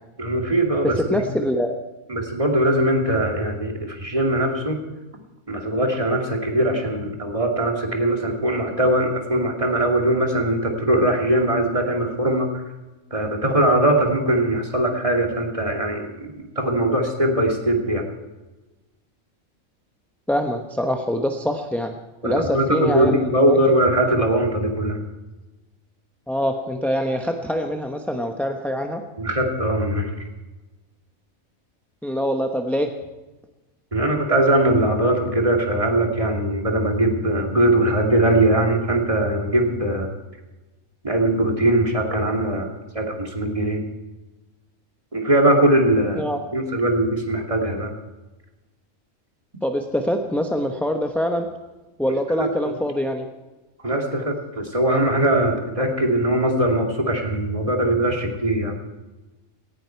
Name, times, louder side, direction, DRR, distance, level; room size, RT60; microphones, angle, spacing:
voice 1, 0.2-1.2 2.1-4.8 5.5-12.6 13.1-18.0 22.2-25.0 29.2-30.1 33.9-40.1 41.0-42.7 42.9-43.8 45.1-47.9 52.4-52.7 53.8-58.8, right 1 dB, 25° right, 1 dB, 2.4 m, -21 dB
voice 2, 0.8-1.8 20.3-22.0 22.2-23.6 26.3-29.1 32.0-33.0 46.2-46.4 49.6-51.5 52.0-53.3, equal, ahead, 4 dB, 0.8 m, -24 dB
18.0 x 16.5 x 4.6 m, 1.1 s
omnidirectional pair, 1.4 m